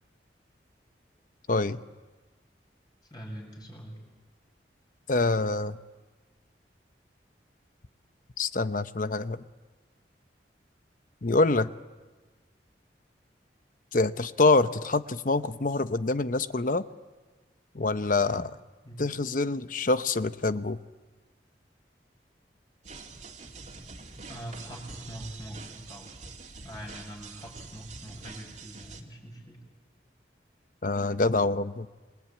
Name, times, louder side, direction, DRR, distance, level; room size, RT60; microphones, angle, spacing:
voice 1, 1.5-1.8 5.1-5.8 8.4-9.4 11.2-11.7 13.9-16.8 17.7-18.6 19.0-20.8 30.8-31.9, left 3 dB, 50° left, 12 dB, 0.8 m, -26 dB
voice 2, 3.1-4.0 18.8-19.1 24.3-26.1 26.6-29.6, equal, 25° left, 0 dB, 6.6 m, -43 dB
sound 1, 22.8-29.0, right 4 dB, 40° right, 2.5 m, -45 dB
27.0 x 22.5 x 8.7 m, 1.3 s
head